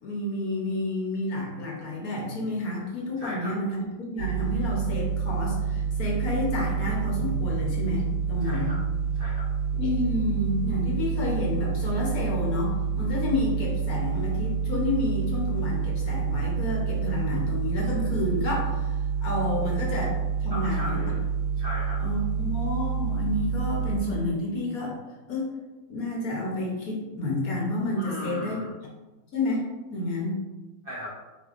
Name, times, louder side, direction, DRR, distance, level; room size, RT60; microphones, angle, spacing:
voice 1, 0.0-8.8 9.7-21.0 22.0-25.0 25.3-25.5 25.9-28.6 29.3-29.6 29.9-30.4, left 2 dB, 60° left, -3 dB, 1.2 m, -30 dB
voice 2, 3.2-3.5 8.4-8.8 9.1-9.5 20.5-21.2 21.6-22.0 28.0-28.7 30.8-31.1, left 1 dB, 55° right, -5 dB, 0.6 m, -37 dB
sound 1, 4.2-24.0, right 6 dB, 90° right, 1.7 m, -28 dB
5.3 x 3.3 x 2.5 m, 1.2 s
omnidirectional pair, 2.0 m